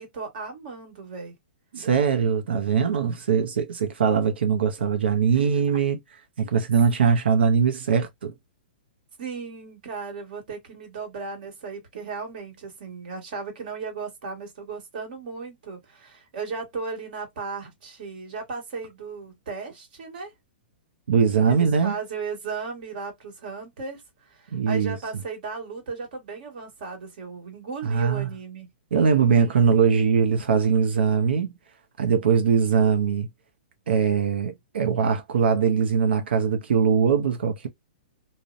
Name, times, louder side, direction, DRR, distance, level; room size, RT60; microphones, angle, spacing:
voice 1, 0.0-1.3 5.3-5.6 9.2-20.3 21.5-28.7, right 4 dB, 55° right, 1.4 m, -36 dB
voice 2, 1.7-6.0 6.4-8.3 21.1-22.0 24.5-25.0 27.8-28.3 28.9-31.5 32.0-33.3 33.9-37.7, right 6 dB, 85° right, 0.6 m, -21 dB
2.6 x 2.1 x 2.4 m
hypercardioid pair, 150°, 6 cm